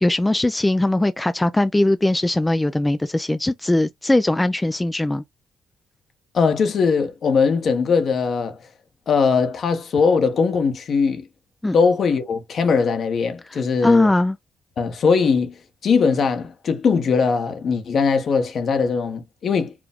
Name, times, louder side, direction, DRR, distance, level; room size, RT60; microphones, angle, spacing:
voice 1, 0.0-5.2 11.6-11.8 13.5-14.4, left 1 dB, 10° left, 0.4 m, -20 dB
voice 2, 6.3-8.6 9.1-11.2 11.7-14.1 14.8-15.5 15.8-19.7, left 5 dB, 55° left, 1.1 m, -20 dB
4.9 x 2.2 x 3.6 m
cardioid pair, 90°, 0 cm